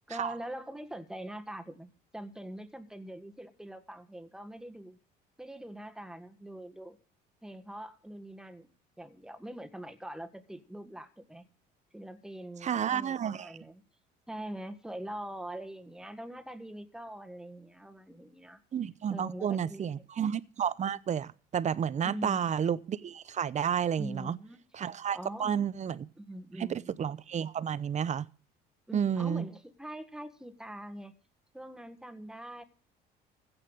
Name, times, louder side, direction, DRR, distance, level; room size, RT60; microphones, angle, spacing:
voice 1, 0.1-5.0 5.4-7.0 7.4-8.7 9.0-11.4 11.9-13.8 14.3-18.6 19.1-20.0 22.0-22.4 24.0-24.6 25.1-25.7 26.2-26.9 28.9-31.1 31.5-32.6, right 1 dB, 5° right, 1.6 m, -43 dB
voice 2, 12.6-13.5 18.7-24.4 24.7-26.0 26.6-28.3 28.9-29.5, right 8 dB, 35° right, 0.8 m, -31 dB
16.0 x 5.8 x 8.1 m
supercardioid pair, 90°, 19 cm